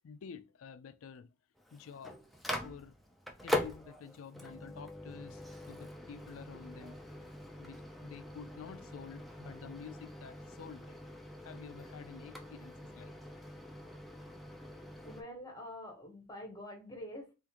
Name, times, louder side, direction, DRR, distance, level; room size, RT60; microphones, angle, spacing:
voice 1, 0.0-1.3 1.7-2.2 2.6-3.0 3.4-7.0 7.6-11.0 11.4-13.1, left 6 dB, 75° left, 0.4 m, -50 dB
Microwave oven, 1.6-15.2, left 1 dB, ahead, 0.4 m, -43 dB
voice 2, 14.7-17.3, left 1 dB, 20° left, 1.0 m, -47 dB
3.6 x 2.5 x 2.8 m
head